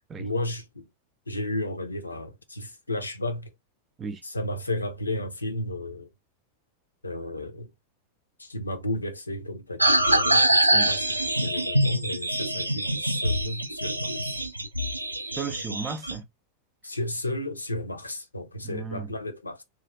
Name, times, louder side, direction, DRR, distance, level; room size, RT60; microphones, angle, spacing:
voice 1, 0.2-0.9 1.3-3.5 4.2-6.1 7.0-7.7 8.4-14.4 16.8-19.6, left 1 dB, 80° left, 0.6 m, -33 dB
sound 1, 9.8-16.1, right 1 dB, 85° right, 0.4 m, -24 dB
voice 2, 15.2-16.3 18.6-19.1, right 5 dB, 20° right, 0.5 m, -35 dB
3.2 x 2.4 x 3.5 m
figure-of-eight pair, 90°, 0 cm